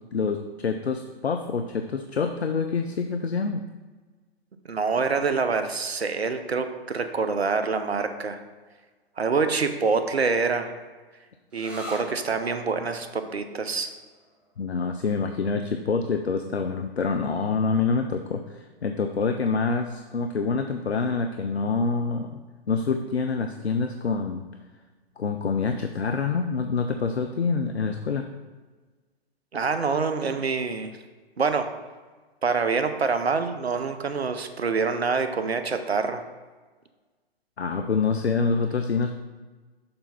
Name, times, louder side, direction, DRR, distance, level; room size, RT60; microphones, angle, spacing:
voice 1, 0.1-3.6 14.6-22.4 22.7-24.5 25.2-28.3 37.6-39.2, left 4 dB, 85° left, 6 dB, 0.5 m, -26 dB
voice 2, 4.7-8.4 9.2-10.7 11.5-13.9 29.5-30.9 31.4-31.7 32.4-36.2, right 4 dB, 80° right, 8 dB, 0.7 m, -26 dB
sound 1, 11.5-18.9, equal, 5° right, 0.5 m, -47 dB
6.8 x 3.4 x 5.5 m, 1.4 s
figure-of-eight pair, 120°, 31 cm